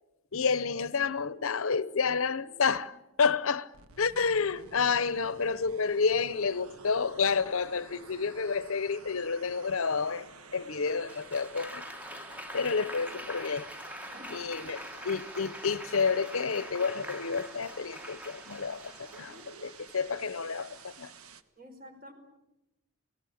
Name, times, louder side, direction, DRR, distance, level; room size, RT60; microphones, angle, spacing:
voice 1, 0.3-11.8 12.5-13.7 14.3-19.4 19.6-21.1, left 5 dB, 75° left, 0.8 m, -30 dB
sound 1, 3.7-21.4, right 5 dB, 85° right, 1.4 m, -52 dB
Applause, 10.9-19.7 20.5-20.9, equal, 5° right, 1.3 m, -44 dB
voice 2, 14.1-14.9 19.1-19.7 21.6-22.1, equal, 40° right, 4.9 m, -51 dB
28.5 x 19.0 x 8.6 m
head